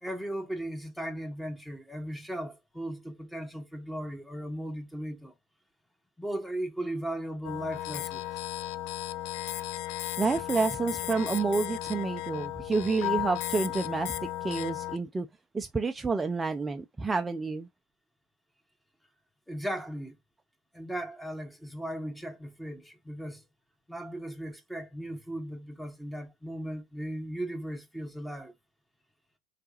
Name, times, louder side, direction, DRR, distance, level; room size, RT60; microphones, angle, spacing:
voice 1, 0.0-5.3 6.2-8.4 19.5-20.1 20.7-23.4 23.9-28.5, right 1 dB, 5° left, 1.6 m, -37 dB
sound 1, 7.4-15.0, left 14 dB, 65° left, 0.4 m, -35 dB
voice 2, 10.2-14.1 14.4-15.3 15.5-17.7, right 4 dB, 20° right, 0.5 m, -29 dB
4.1 x 3.3 x 2.9 m
hypercardioid pair, 75°, 0 cm